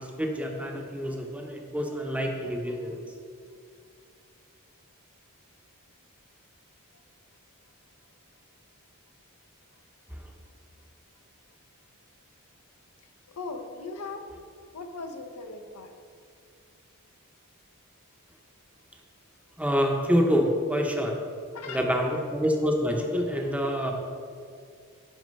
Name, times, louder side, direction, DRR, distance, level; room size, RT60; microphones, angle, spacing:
voice 1, 0.0-3.0 19.6-21.2 21.7-23.9, equal, 5° right, 2 dB, 0.7 m, -27 dB
voice 2, 13.3-14.2 14.7-15.9 21.5-22.2, left 3 dB, 80° left, 6 dB, 0.7 m, -39 dB
6.3 x 4.9 x 5.3 m, 2.3 s
head